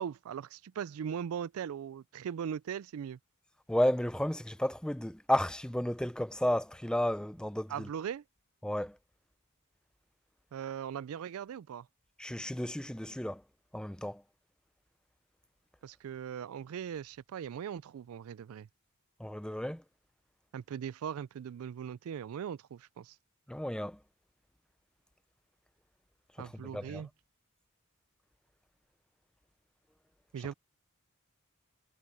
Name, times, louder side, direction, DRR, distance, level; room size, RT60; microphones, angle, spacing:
voice 1, 0.0-3.2 7.7-8.2 10.5-11.9 15.8-18.7 20.5-23.2 26.4-27.1 30.3-30.5, right 8 dB, 75° right, 0.3 m, -39 dB
voice 2, 3.7-7.9 8.6-9.0 12.2-13.4 13.7-14.2 19.2-19.8 23.5-24.0 26.4-27.0, left 1 dB, 5° left, 0.6 m, -32 dB
head